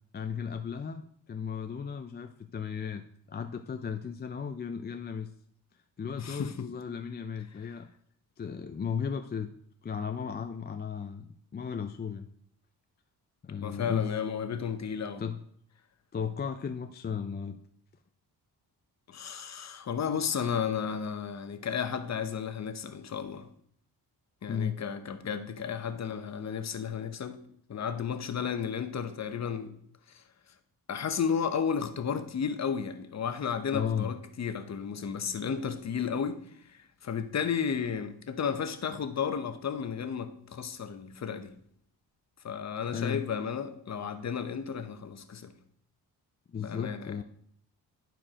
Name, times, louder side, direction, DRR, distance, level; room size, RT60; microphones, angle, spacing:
voice 1, 0.1-5.3 6.0-7.9 8.4-9.5 9.8-12.3 13.4-14.1 15.2-15.4 16.1-17.6 24.5-24.8 33.7-34.1 42.9-43.2 46.5-47.2, left 7 dB, 25° left, 0.5 m, -35 dB
voice 2, 6.2-6.7 13.6-15.2 19.1-23.5 24.4-27.4 27.7-29.7 30.1-30.2 30.9-36.4 37.0-41.5 42.4-45.5 46.6-47.2, left 7 dB, 45° left, 0.9 m, -33 dB
11.0 x 4.6 x 5.0 m
cardioid pair, 105°, 37 cm